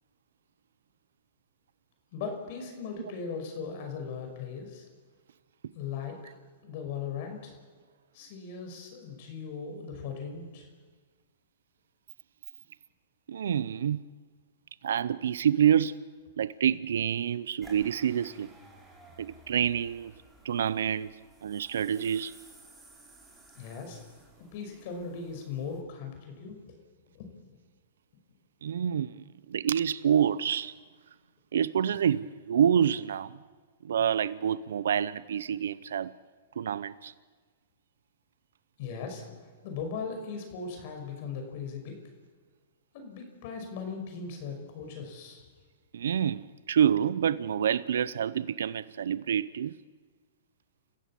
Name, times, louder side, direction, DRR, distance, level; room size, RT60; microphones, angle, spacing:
voice 1, 2.1-4.8 5.7-6.2 6.6-7.5 8.1-10.7 23.5-24.0 24.4-26.7 27.1-27.3 38.8-42.0 42.9-45.5, left 5 dB, 50° left, 5.8 m, -38 dB
voice 2, 13.3-14.1 14.8-16.0 16.4-18.5 19.2-20.1 20.4-21.1 21.4-22.3 28.6-30.7 31.5-33.4 33.8-36.1 36.6-37.1 45.9-49.8, right 9 dB, 80° right, 0.6 m, -27 dB
sound 1, 17.6-25.8, right 2 dB, 10° right, 4.9 m, -55 dB
30.0 x 15.0 x 7.5 m
hypercardioid pair, 135°, 0 cm